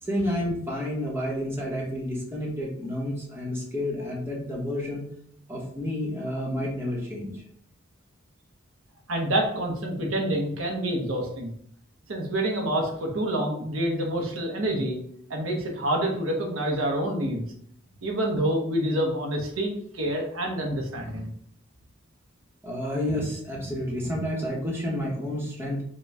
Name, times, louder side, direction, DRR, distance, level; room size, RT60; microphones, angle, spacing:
voice 1, 0.0-5.0 5.5-7.4 22.6-25.8, left 1 dB, 10° right, -4 dB, 0.9 m, -30 dB
voice 2, 9.1-11.5 12.1-15.0 15.3-17.4 18.0-21.3, right 1 dB, 85° right, 1 dB, 0.9 m, -27 dB
5.1 x 2.2 x 3.4 m, 0.66 s
head